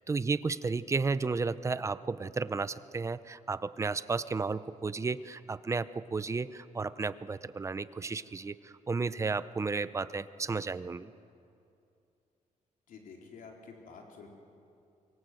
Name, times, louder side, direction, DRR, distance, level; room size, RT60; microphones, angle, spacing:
voice 1, 0.0-11.1, right 4 dB, 20° right, 15 dB, 0.5 m, -33 dB
voice 2, 12.9-14.3, left 5 dB, 80° left, 1 dB, 3.9 m, -49 dB
24.5 x 24.0 x 7.7 m, 2.6 s
wide cardioid pair, 180°, 14 cm